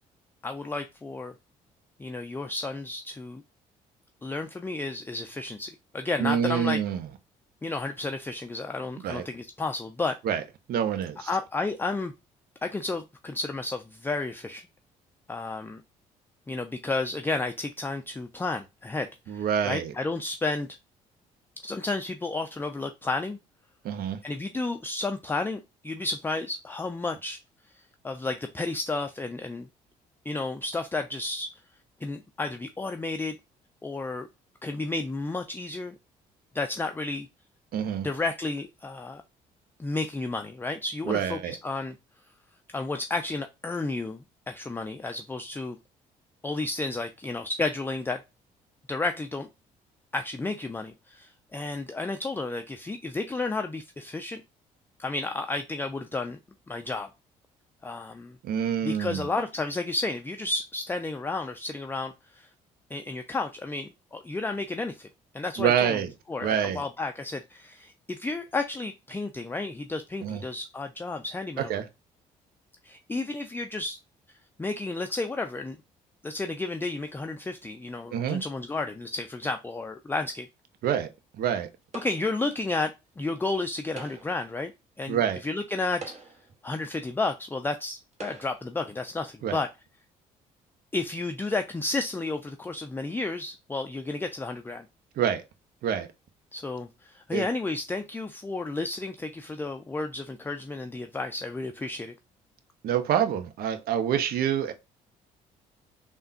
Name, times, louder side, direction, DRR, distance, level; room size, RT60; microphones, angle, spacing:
voice 1, 0.4-1.3 2.0-3.4 4.2-6.8 7.6-10.2 11.2-12.1 12.6-14.6 15.3-15.8 16.5-20.7 21.6-23.4 24.2-27.4 28.0-29.7 30.3-31.5 32.0-33.4 33.8-34.3 34.6-35.9 36.5-37.3 38.0-39.2 39.8-42.0 42.7-45.8 46.4-48.2 48.9-49.5 50.1-54.4 55.0-56.4 56.7-57.1 57.8-58.4 58.8-62.5 62.9-65.1 65.3-66.0 66.3-71.8 72.8-74.0 74.6-75.8 76.2-80.5 81.9-84.7 85.0-86.0 86.6-89.7 90.9-94.9 96.5-102.1, left 3 dB, 10° left, 0.4 m, -32 dB
voice 2, 6.2-7.1 9.0-9.3 10.2-10.4 10.7-11.3 19.3-19.9 23.8-24.2 37.7-38.1 41.1-41.6 58.4-59.3 65.6-66.1 66.4-66.8 70.2-70.4 71.6-71.9 78.1-78.4 80.8-81.1 81.4-81.7 85.1-85.4 89.4-89.6 95.2-95.4 95.8-96.1 97.3-97.5 102.8-104.7, right 9 dB, 60° right, 0.6 m, -27 dB
sound 1, 81.9-82.5 83.8-84.5 85.3-85.4 85.9-86.6 87.5-87.6 88.1-88.7, right 3 dB, 40° right, 1.1 m, -43 dB
3.4 x 2.2 x 2.5 m
hypercardioid pair, 55°, 17 cm